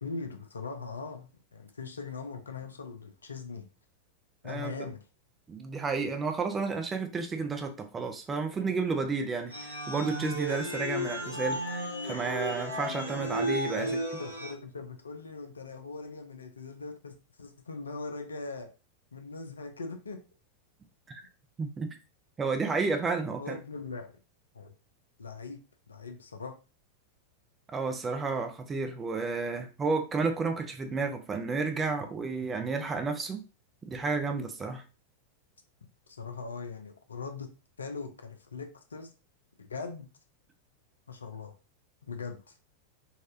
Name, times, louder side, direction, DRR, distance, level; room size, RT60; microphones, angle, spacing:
voice 1, 0.0-3.7 4.4-5.0 13.7-13.9 14.2-17.1 17.4-18.7 19.1-20.2 23.3-24.1 24.5-24.7 25.2-25.6 25.9-26.5 36.1-37.5 37.8-39.1 39.6-40.1 41.1-41.5 42.0-42.5, left 4 dB, 75° left, 6 dB, 0.5 m, -40 dB
voice 2, 5.5-13.9 21.1-21.2 21.6-21.9 22.4-23.6 27.7-33.4 33.9-34.8, right 4 dB, 20° right, 5 dB, 0.6 m, -31 dB
sound 1, 9.5-14.5, equal, 85° right, 0.9 m, -34 dB
4.0 x 2.4 x 2.6 m, 0.33 s
figure-of-eight pair, 90°, 0 cm